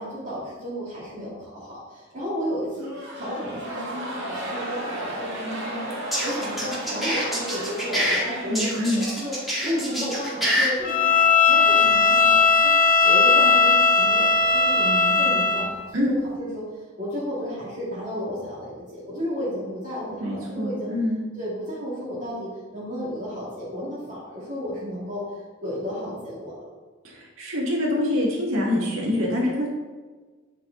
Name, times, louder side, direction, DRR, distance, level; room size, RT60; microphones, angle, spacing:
voice 1, 0.0-12.7 13.0-16.7 17.0-20.9 21.4-26.5, equal, 40° right, -9 dB, 2.2 m, -33 dB
sound 1, 2.8-11.2, right 1 dB, 60° right, 2.0 m, -35 dB
sound 2, 5.9-8.2 8.5-10.7, equal, ahead, 2.3 m, -25 dB
voice 2, 8.5-9.0 15.9-16.1 20.2-21.2 27.0-29.7, left 1 dB, 80° right, -4 dB, 2.2 m, -25 dB
Bowed string instrument, 10.8-15.7, left 4 dB, 40° left, 0.8 m, -18 dB
9.3 x 5.0 x 4.0 m, 1.4 s
head